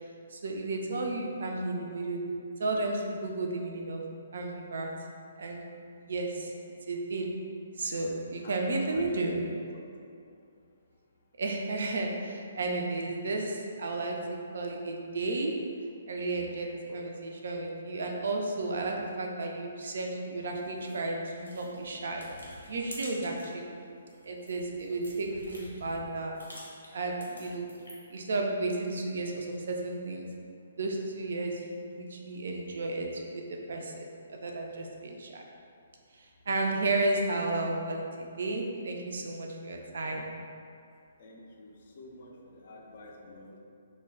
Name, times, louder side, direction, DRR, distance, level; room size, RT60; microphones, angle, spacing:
voice 1, 0.3-2.2 2.6-4.0 4.3-4.9 5.4-5.6 6.0-6.5 6.9-7.3 7.8-9.4 11.4-15.6 16.1-22.3 22.7-23.8 24.2-26.4 26.9-27.7 28.1-30.3 30.8-35.4 36.1-40.2, right 2 dB, 55° right, 1 dB, 0.3 m, -33 dB
voice 2, 8.4-9.4 9.7-9.8 13.0-13.4 16.9-17.0 41.2-43.6, left 2 dB, 45° left, -1 dB, 0.4 m, -50 dB
sound 1, 20.5-23.6 24.0-28.2, left 1 dB, 80° left, 0.7 m, -49 dB
2.1 x 2.1 x 3.5 m, 2.4 s
figure-of-eight pair, 130°, 0 cm